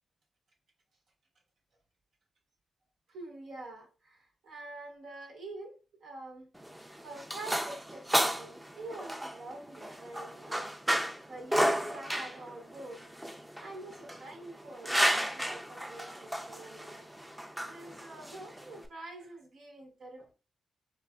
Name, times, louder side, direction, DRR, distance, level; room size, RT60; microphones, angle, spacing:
voice 1, 3.1-6.5 7.0-10.7 11.3-13.0 13.3-20.3, right 2 dB, 85° right, 1.0 m, -47 dB
sound 1, 6.6-18.9, equal, 10° right, 0.5 m, -33 dB
4.6 x 2.3 x 2.2 m
cardioid pair, 80°, 0 cm